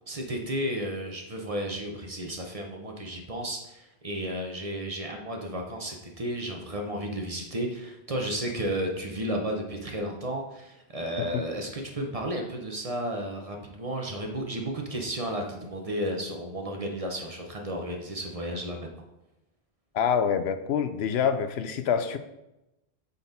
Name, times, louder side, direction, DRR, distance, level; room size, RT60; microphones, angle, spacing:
voice 1, 0.1-18.9, equal, 35° right, 2 dB, 1.0 m, -33 dB
voice 2, 19.9-22.2, left 7 dB, 75° left, 9 dB, 0.8 m, -26 dB
8.4 x 4.1 x 4.1 m, 0.92 s
omnidirectional pair, 1.1 m